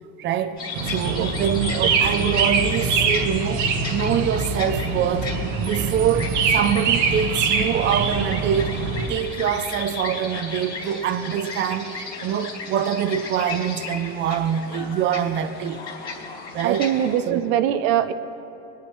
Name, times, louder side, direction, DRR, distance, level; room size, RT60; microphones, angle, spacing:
voice 1, 0.2-0.6 0.9-8.8 9.1-15.8 16.5-16.9 17.3-17.4, right 9 dB, 35° right, 9 dB, 0.5 m, -24 dB
sound 1, 0.6-17.2, left 4 dB, 25° left, 2.8 m, -35 dB
sound 2, 0.7-9.1, right 5 dB, 55° right, 1.1 m, -24 dB
voice 2, 16.6-18.1, right 11 dB, 70° right, 11 dB, 0.6 m, -22 dB
20.5 x 10.0 x 3.1 m, 2.9 s
supercardioid pair, 125°, 34 cm